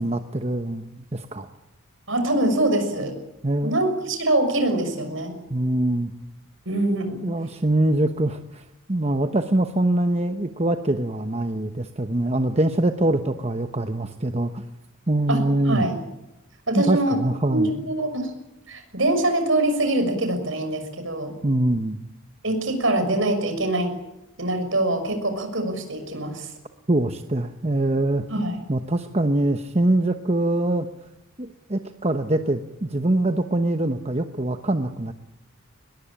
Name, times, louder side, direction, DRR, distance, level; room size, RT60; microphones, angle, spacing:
voice 1, 0.0-1.5 3.4-3.8 5.5-6.1 7.2-14.6 15.1-15.8 16.7-17.9 21.4-22.0 26.9-28.3 28.7-30.9 31.4-35.1, right 1 dB, 30° right, 7 dB, 1.0 m, -23 dB
voice 2, 2.1-3.1 3.6-5.3 6.6-7.2 15.3-15.4 15.7-16.0 16.7-17.2 17.5-18.3 18.7-21.3 22.4-23.9 24.4-26.5 28.3-28.6, right 1 dB, 65° right, 6 dB, 6.3 m, -24 dB
22.0 x 21.0 x 8.8 m, 0.89 s
head